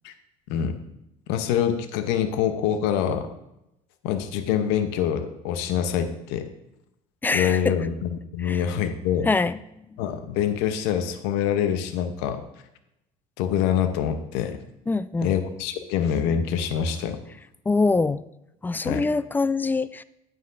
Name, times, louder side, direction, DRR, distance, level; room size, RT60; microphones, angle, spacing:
voice 1, 0.5-0.8 1.3-3.3 4.0-6.5 7.3-9.3 10.0-12.4 13.4-14.6 15.2-17.2 18.8-19.1, left 8 dB, 70° left, 9 dB, 0.8 m, -25 dB
voice 2, 7.2-7.9 8.4-8.6 9.3-9.6 14.9-15.3 17.7-18.2 18.6-20.0, left 3 dB, 10° left, 17 dB, 0.3 m, -24 dB
9.5 x 7.9 x 2.6 m, 0.86 s
hypercardioid pair, 70°, 19 cm